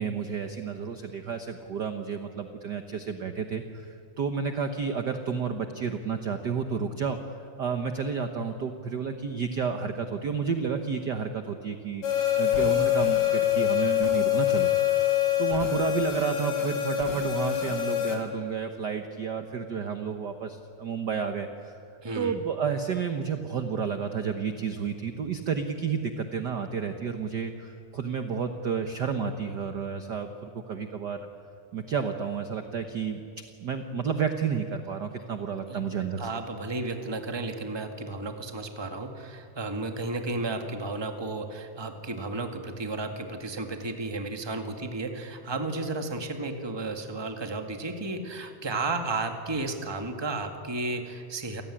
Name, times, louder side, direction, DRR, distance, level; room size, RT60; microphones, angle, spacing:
voice 1, 0.0-12.0 12.4-14.7 15.4-21.8 22.1-31.3 31.7-33.3 33.6-36.3, right 6 dB, 55° right, 7 dB, 1.2 m, -31 dB
sound 1, 12.0-18.2, left 12 dB, 50° left, 4.4 m, -25 dB
voice 2, 22.0-22.3 35.3-35.4 35.7-35.8 36.2-51.6, right 2 dB, 10° right, 5 dB, 1.4 m, -33 dB
28.5 x 18.0 x 10.0 m, 2.6 s
omnidirectional pair, 3.4 m